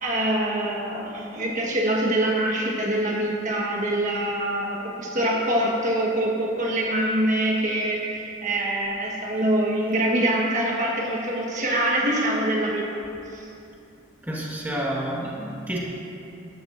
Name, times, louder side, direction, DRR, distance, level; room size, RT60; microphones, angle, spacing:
voice 1, 0.0-12.8 13.3-13.4, right 1 dB, 40° right, -3 dB, 1.2 m, -24 dB
voice 2, 14.3-15.8, right 1 dB, 10° right, -5 dB, 1.4 m, -29 dB
14.0 x 11.0 x 2.5 m, 2.7 s
head